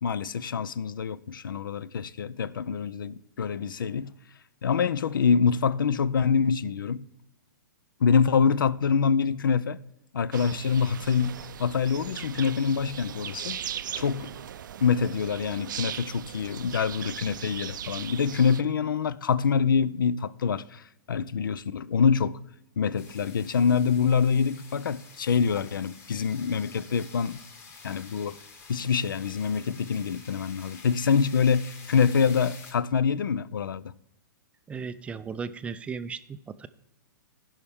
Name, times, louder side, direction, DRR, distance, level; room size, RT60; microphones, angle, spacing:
voice 1, 0.0-4.1 4.6-7.1 8.0-9.8 10.1-13.6 13.9-14.4 14.8-22.4 22.8-27.4 27.8-28.4 28.7-33.9, left 6 dB, 85° left, 0.4 m, -25 dB
sound 1, 10.3-18.6, right 9 dB, 70° right, 0.5 m, -38 dB
sound 2, 23.0-32.7, left 4 dB, 25° left, 1.3 m, -49 dB
voice 2, 34.7-36.7, right 5 dB, 10° right, 0.3 m, -36 dB
15.5 x 5.7 x 3.5 m
hypercardioid pair, 130°, 11 cm